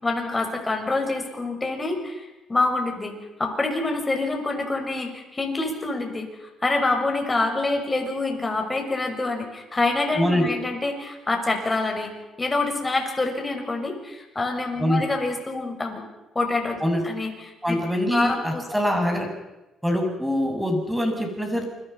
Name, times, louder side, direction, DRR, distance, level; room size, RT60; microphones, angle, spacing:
voice 1, 0.0-3.1 3.4-12.1 12.4-16.0 16.3-16.8 17.0-17.8 18.1-18.6, left 2 dB, 20° left, 3 dB, 6.5 m, -26 dB
voice 2, 10.1-10.5 14.8-15.0 16.8-17.1 17.6-19.3 19.8-21.7, equal, 5° right, 3 dB, 7.2 m, -24 dB
28.5 x 22.5 x 5.7 m, 1.0 s
cardioid pair, 90°, 0 cm